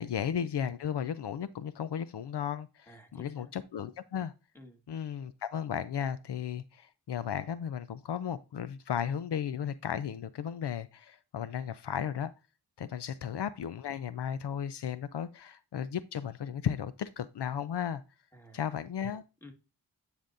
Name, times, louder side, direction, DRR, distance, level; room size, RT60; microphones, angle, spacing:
voice 1, 0.0-4.3 4.9-12.3 12.8-18.0 18.5-19.2, left 8 dB, 85° left, 0.5 m, -35 dB
voice 2, 2.9-3.5 4.5-4.8 18.3-18.6 19.4-19.5, left 1 dB, 5° left, 1.6 m, -53 dB
9.5 x 5.1 x 2.5 m
wide cardioid pair, 55°, 40 cm